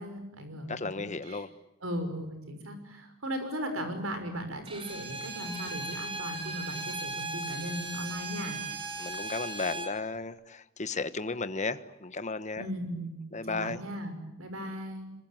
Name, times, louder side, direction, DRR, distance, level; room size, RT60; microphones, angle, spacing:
voice 1, 0.0-1.4 1.8-8.6 12.6-13.2 13.5-15.1, equal, 70° right, 8 dB, 6.0 m, -37 dB
voice 2, 0.7-1.5 9.0-12.7 13.3-13.8, left 3 dB, 35° left, 12 dB, 1.2 m, -34 dB
Bowed string instrument, 4.7-10.0, right 2 dB, 25° right, 3.9 m, -37 dB
26.5 x 23.5 x 9.3 m, 0.93 s
head